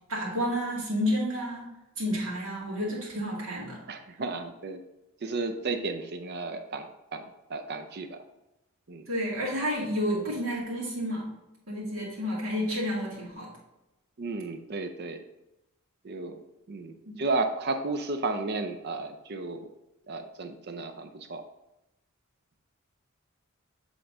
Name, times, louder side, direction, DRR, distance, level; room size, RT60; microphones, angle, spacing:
voice 1, 0.1-1.7 2.0-3.8 9.1-11.3 11.7-13.5 17.1-17.2, equal, 65° right, -4 dB, 2.4 m, -30 dB
voice 2, 3.9-4.8 5.2-6.9 7.1-7.2 7.5-8.2 8.9-9.1 14.2-15.2 16.0-16.4 16.7-19.7 20.1-21.4, right 3 dB, 50° right, 7 dB, 0.5 m, -33 dB
7.9 x 3.8 x 3.7 m, 0.93 s
head